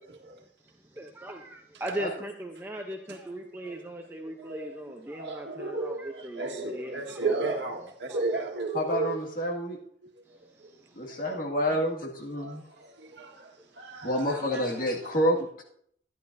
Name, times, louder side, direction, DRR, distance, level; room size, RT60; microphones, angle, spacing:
voice 1, 1.0-7.6 8.1-8.2 14.8-14.9, right 1 dB, 10° right, 2 dB, 0.7 m, -38 dB
voice 2, 4.2-4.8 5.1-9.2 10.0-10.1 10.6-10.7 12.4-15.2, right 3 dB, 75° right, 1 dB, 1.6 m, -34 dB
voice 3, 8.7-9.8 11.0-12.6 14.0-15.6, equal, 50° left, -1 dB, 2.0 m, -28 dB
13.0 x 10.5 x 2.7 m, 0.64 s
head